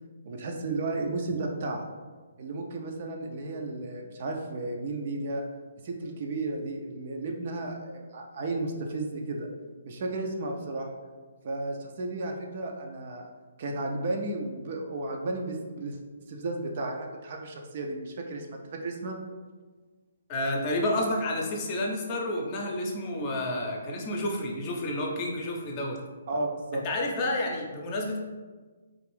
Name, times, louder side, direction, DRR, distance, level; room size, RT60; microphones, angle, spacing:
voice 1, 0.2-1.9 2.4-5.4 5.8-9.5 9.9-10.9 11.4-13.3 13.6-16.0 16.3-19.2 26.3-26.8, right 2 dB, 45° right, 2 dB, 0.4 m, -33 dB
voice 2, 20.3-26.0 26.7-28.2, left 1 dB, 30° left, 0 dB, 0.6 m, -30 dB
3.6 x 2.5 x 3.3 m, 1.4 s
figure-of-eight pair, 135°, 0 cm